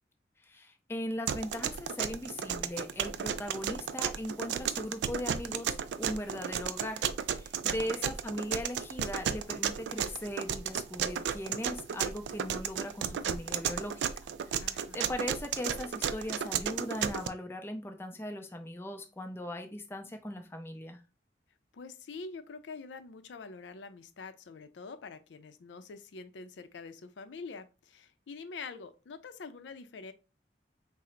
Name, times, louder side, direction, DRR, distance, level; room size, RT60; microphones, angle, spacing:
voice 1, 0.4-14.1 14.5-21.0, left 1 dB, 15° left, 0.4 m, -39 dB
sound 1, 1.3-17.3, right 8 dB, 75° right, 0.3 m, -33 dB
voice 2, 7.6-8.1 14.6-15.1 21.7-30.1, left 4 dB, 90° left, 0.4 m, -46 dB
3.7 x 2.0 x 4.3 m
head